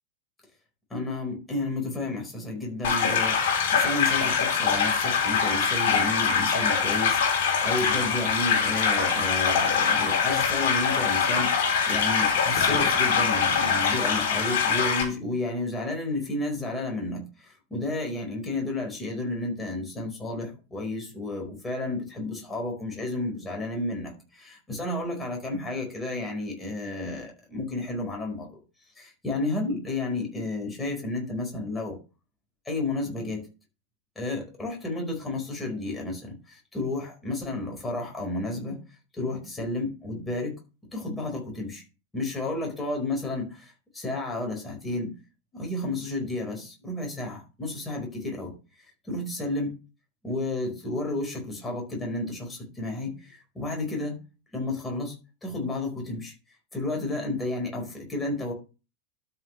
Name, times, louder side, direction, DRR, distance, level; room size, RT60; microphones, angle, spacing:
voice 1, 0.9-7.2 7.6-28.5 29.0-32.0 32.6-33.5 34.1-38.8 39.1-40.5 40.9-41.8 42.1-45.1 45.5-49.7 50.2-54.2 54.5-55.2 55.4-56.3 56.7-58.5, left 2 dB, 10° left, 0 dB, 4.7 m, -32 dB
sound 1, 2.8-15.0, left 6 dB, 50° left, 3.0 m, -23 dB
12.5 x 6.1 x 3.3 m, 0.32 s
figure-of-eight pair, 90°, 0 cm